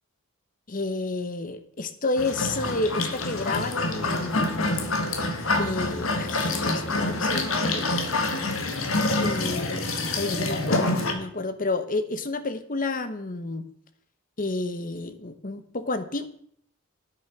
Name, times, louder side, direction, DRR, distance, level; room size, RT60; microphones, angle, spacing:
voice 1, 0.7-4.7 5.6-8.1 9.2-13.7 14.4-16.3, left 2 dB, 40° left, 10 dB, 1.1 m, -30 dB
sound 1, 2.2-11.1, left 2 dB, 80° left, 1.8 m, -26 dB
9.8 x 8.6 x 6.1 m, 0.63 s
head